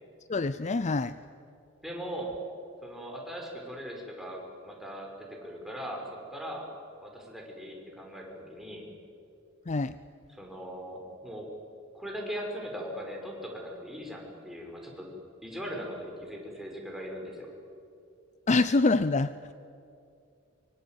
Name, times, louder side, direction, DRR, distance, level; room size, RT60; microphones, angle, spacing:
voice 1, 0.3-1.1 9.7-10.0 18.5-19.5, left 3 dB, 35° left, 14 dB, 0.6 m, -26 dB
voice 2, 1.8-2.3 2.8-6.7 7.0-8.8 10.4-11.5 11.9-15.1 15.4-17.5, equal, ahead, -1 dB, 5.9 m, -39 dB
25.0 x 24.0 x 9.3 m, 2.6 s
head